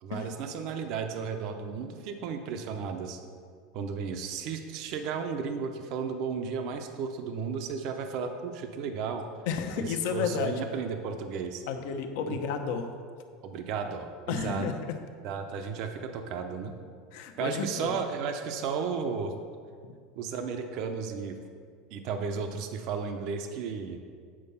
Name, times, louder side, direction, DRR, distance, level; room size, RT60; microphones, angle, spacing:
voice 1, 0.0-3.2 3.7-9.3 9.8-11.6 12.3-12.4 13.4-14.7 15.2-16.7 17.4-19.3 20.2-21.4 21.9-24.0, right 6 dB, 50° right, 6 dB, 0.7 m, -34 dB
voice 2, 9.5-10.5 11.7-12.9 14.3-15.0 17.1-18.0, left 6 dB, 70° left, 5 dB, 0.8 m, -32 dB
8.7 x 4.6 x 5.6 m, 2.1 s
supercardioid pair, 150°, 0 cm